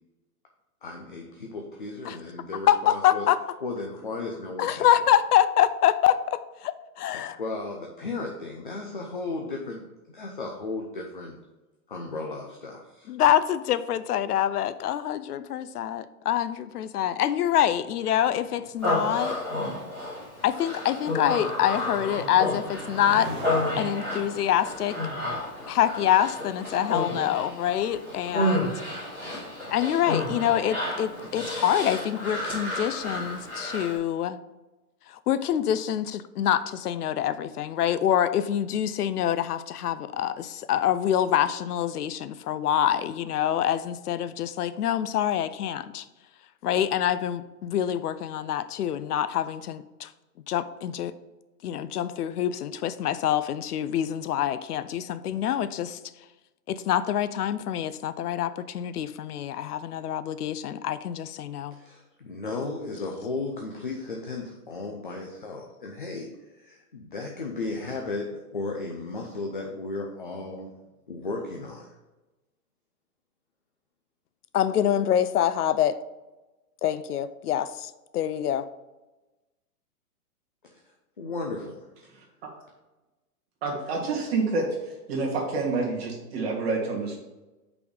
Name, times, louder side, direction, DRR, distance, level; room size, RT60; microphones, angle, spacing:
voice 1, 0.8-3.3 3.6-4.9 7.1-11.4 11.9-13.1 61.7-66.3 66.6-70.8 71.1-71.9 80.7-80.8 81.2-81.8, left 3 dB, 35° left, 1 dB, 0.4 m, -35 dB
voice 2, 2.7-3.4 4.6-7.4 13.1-19.4 20.4-23.3 23.8-25.0 25.7-28.8 29.7-34.4 35.1-46.0 46.6-50.1 50.5-51.1 51.6-56.0 56.7-61.8 74.5-76.0 76.8-78.7, left 10 dB, 80° left, 14 dB, 0.6 m, -26 dB
sound 1, 17.5-31.0, equal, 20° right, 0.8 m, -44 dB
Human voice, 18.8-34.0, left 1 dB, 5° left, 2.2 m, -31 dB
voice 3, 83.6-84.7 85.1-87.2, right 3 dB, 40° right, -2 dB, 1.7 m, -27 dB
5.6 x 4.2 x 5.2 m, 1.1 s
hypercardioid pair, 175°, 46 cm